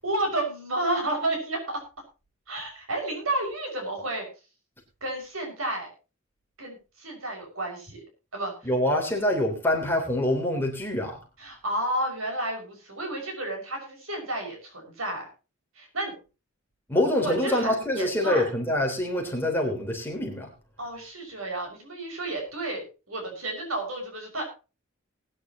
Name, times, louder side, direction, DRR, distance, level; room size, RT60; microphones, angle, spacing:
voice 1, 0.0-1.8 2.5-4.3 5.0-5.9 6.6-8.0 8.3-8.7 11.4-15.3 15.8-16.1 17.2-18.5 20.8-24.4, right 1 dB, 85° right, 2 dB, 6.2 m, -31 dB
voice 2, 8.6-11.2 16.9-20.5, left 1 dB, 10° left, 0 dB, 3.4 m, -25 dB
20.5 x 10.0 x 3.0 m, 0.31 s
head